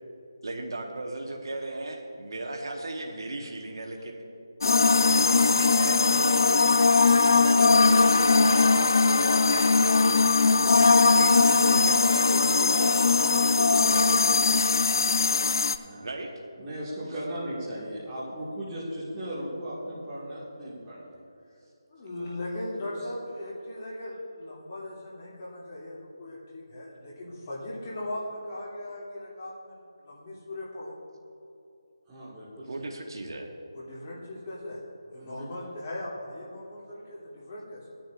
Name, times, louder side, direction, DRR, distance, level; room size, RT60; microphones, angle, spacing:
voice 1, 0.4-4.2 4.7-6.9 7.1-10.3 10.8-14.5 16.0-16.4 32.7-33.5, right 2 dB, 70° right, 2 dB, 1.1 m, -37 dB
sound 1, 4.6-15.8, left 4 dB, 60° left, 0.4 m, -20 dB
voice 2, 16.6-21.2 22.2-22.3 22.9-23.0 32.1-32.7 35.2-35.4, equal, 10° right, -11 dB, 2.0 m, -37 dB
voice 3, 21.9-30.9 33.7-34.8 35.1-37.8, left 1 dB, 30° left, -7 dB, 2.8 m, -38 dB
16.5 x 10.0 x 2.5 m, 2.7 s
figure-of-eight pair, 165°, 2 cm